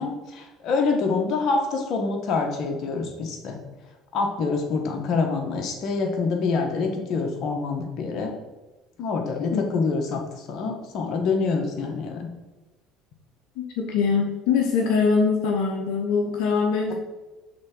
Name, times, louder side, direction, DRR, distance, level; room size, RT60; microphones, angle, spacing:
voice 1, 0.0-3.6 4.1-8.3 9.0-12.3, left 4 dB, 60° left, 2 dB, 1.4 m, -26 dB
voice 2, 13.8-16.9, left 5 dB, 75° left, 1 dB, 0.9 m, -22 dB
6.6 x 3.5 x 6.1 m, 1.1 s
supercardioid pair, 85°, 0 cm